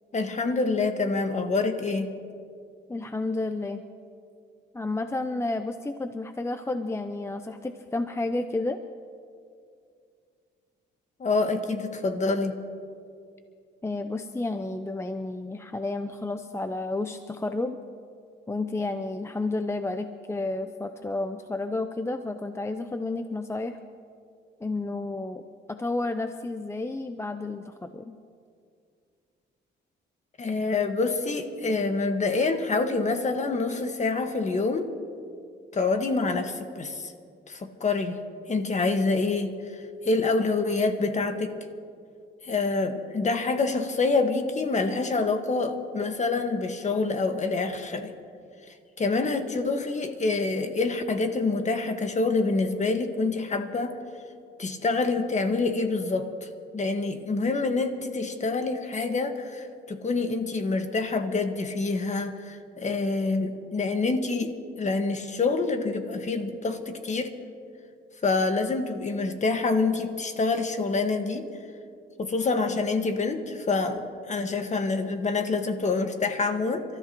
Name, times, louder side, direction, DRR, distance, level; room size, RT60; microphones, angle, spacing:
voice 1, 0.1-2.1 11.2-12.6 30.4-34.9 35.7-37.1 37.5-38.2 38.5-39.6 40.0-41.6 42.4-48.1 49.0-54.0 54.6-56.5 56.7-67.3 68.2-71.5 72.2-76.8, left 3 dB, 35° left, 6 dB, 1.5 m, -26 dB
voice 2, 2.9-3.8 4.7-8.8 13.8-17.8 18.5-23.8 24.6-28.1, left 2 dB, 15° left, 8 dB, 0.6 m, -31 dB
29.5 x 13.5 x 3.0 m, 2.3 s
cardioid pair, 90°, 20 cm